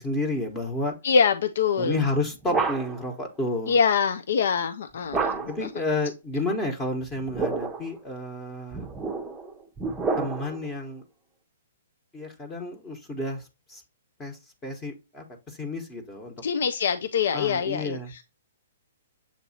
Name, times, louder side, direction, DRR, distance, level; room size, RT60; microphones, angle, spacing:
voice 1, 0.0-0.9 1.8-3.8 5.5-8.8 10.2-11.0 12.1-13.8 14.2-16.3 17.3-18.1, left 2 dB, 20° left, 1.1 m, -31 dB
voice 2, 1.0-2.0 3.7-5.7 16.4-18.2, left 6 dB, 65° left, 0.4 m, -24 dB
sound 1, 1.9-3.1 5.1-5.7 7.1-7.9 8.7-10.7, right 4 dB, 10° right, 0.7 m, -30 dB
7.2 x 2.6 x 2.7 m
figure-of-eight pair, 125°, 0 cm